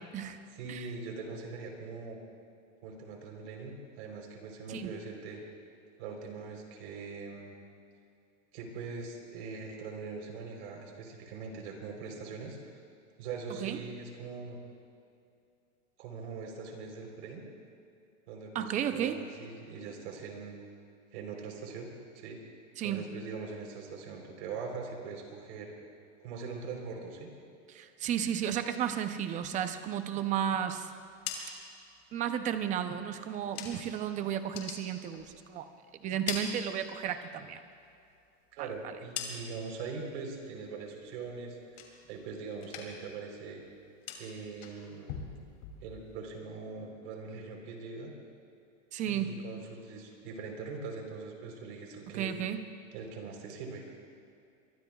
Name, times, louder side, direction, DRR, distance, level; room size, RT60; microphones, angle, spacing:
voice 1, 0.5-2.2 2.8-5.4 6.0-7.5 8.5-12.7 13.2-14.6 16.0-17.4 18.3-20.5 21.1-21.9 22.1-22.4 22.8-25.7 26.2-27.3 38.5-43.6 44.2-45.2 45.8-48.1 49.1-52.3 52.9-53.8, right 4 dB, 60° right, 1 dB, 3.8 m, -42 dB
voice 2, 18.5-19.2 22.8-23.1 27.7-30.9 32.1-35.7 36.0-37.6 38.6-38.7 48.9-49.4 52.1-52.6, right 9 dB, 20° right, 9 dB, 0.6 m, -33 dB
sound 1, 30.9-34.0 34.4-35.7 36.0-37.3 37.6-39.8 40.2-40.6 41.0-42.3 42.5-43.2 43.4-46.3, left 7 dB, 50° left, 2.8 m, -44 dB
23.5 x 23.0 x 2.4 m, 2.5 s
supercardioid pair, 160°, 37 cm